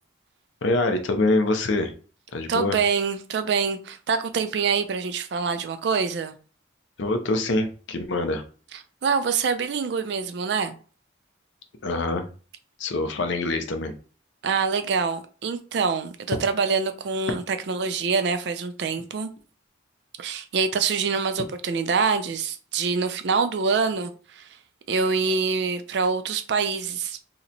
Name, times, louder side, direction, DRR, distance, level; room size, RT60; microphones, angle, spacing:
voice 1, 0.6-1.9 2.3-2.8 7.0-8.4 11.8-12.3 12.8-13.9, left 2 dB, 75° left, 0.6 m, -25 dB
voice 2, 2.5-6.3 9.0-10.8 14.4-19.3 20.2-24.5 24.9-27.2, right 5 dB, 65° right, 0.4 m, -25 dB
2.9 x 2.1 x 3.8 m
head